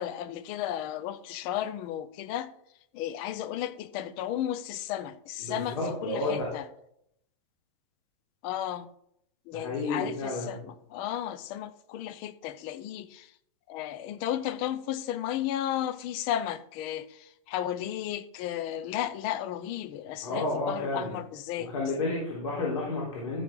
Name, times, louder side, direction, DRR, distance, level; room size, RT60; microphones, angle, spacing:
voice 1, 0.0-2.5 2.9-6.6 8.4-8.9 9.5-13.3 13.7-21.7, left 11 dB, 25° left, 0.5 m, -34 dB
voice 2, 5.4-6.4 9.5-10.6 20.2-21.1 21.6-23.4, left 2 dB, 65° left, 3.7 m, -31 dB
13.5 x 6.5 x 3.8 m
supercardioid pair, 170°, 19 cm